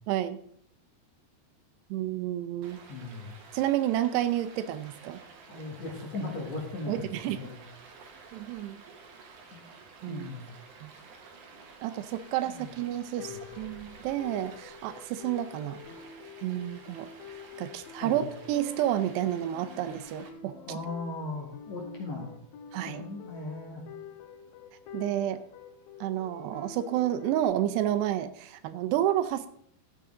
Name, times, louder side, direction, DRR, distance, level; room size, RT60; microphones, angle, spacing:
voice 1, 0.1-0.4 1.9-2.8 3.5-5.2 6.9-7.4 8.3-8.8 10.0-10.3 10.8-10.9 11.8-15.8 16.4-17.1 17.6-20.5 22.7-23.0 24.9-25.4 26.0-29.5, right 12 dB, 80° right, 11 dB, 2.7 m, -30 dB
Stream, 2.6-20.3, right 4 dB, 65° right, 2.2 m, -52 dB
voice 2, 2.9-3.4 5.5-7.6 9.5-9.6 10.1-10.4 12.5-12.7 13.2-13.4 18.0-18.3 20.5-22.3 22.8-23.8, left 2 dB, 55° left, 0 dB, 2.3 m, -38 dB
sound 1, 13.0-27.4, left 7 dB, 80° left, 2.1 m, -47 dB
13.5 x 8.1 x 3.7 m, 0.65 s
omnidirectional pair, 5.0 m